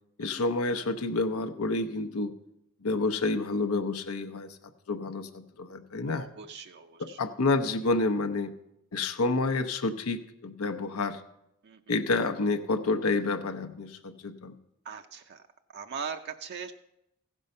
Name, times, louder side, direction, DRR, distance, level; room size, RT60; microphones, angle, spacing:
voice 1, 0.2-2.3 2.8-4.6 4.9-6.3 7.2-8.5 8.9-11.2 11.9-14.5, left 3 dB, 75° left, 9 dB, 0.7 m, -29 dB
voice 2, 6.1-7.2 11.6-11.8 14.9-15.4 15.7-16.7, right 6 dB, 50° right, 6 dB, 0.5 m, -40 dB
15.5 x 5.4 x 5.3 m, 0.82 s
head